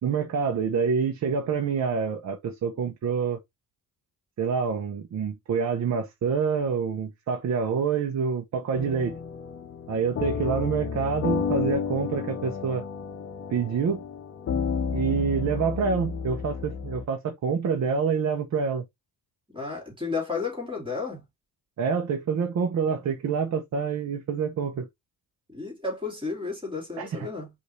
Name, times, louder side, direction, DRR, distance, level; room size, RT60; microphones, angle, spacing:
voice 1, 0.0-3.4 4.4-9.1 9.9-12.8 13.5-14.0 14.9-18.8 21.8-24.9 27.0-27.3, right 6 dB, 50° right, 0.9 m, -27 dB
sound 1, 8.7-17.0, left 6 dB, 40° left, 0.8 m, -31 dB
voice 2, 19.5-21.2 25.5-27.5, left 4 dB, 15° right, 2.7 m, -32 dB
5.2 x 2.7 x 3.1 m
cardioid pair, 125°, 35 cm